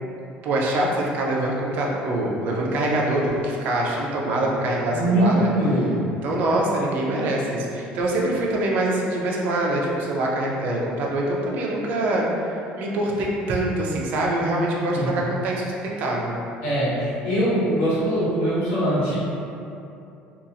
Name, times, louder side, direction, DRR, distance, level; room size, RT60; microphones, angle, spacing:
voice 1, 0.4-5.5 6.2-16.4, right 1 dB, 50° right, -3 dB, 0.4 m, -24 dB
voice 2, 4.9-6.1 14.9-15.1 16.6-19.1, right 1 dB, 85° left, -12 dB, 1.4 m, -22 dB
2.8 x 2.4 x 2.5 m, 2.7 s
cardioid pair, 170°, 4 cm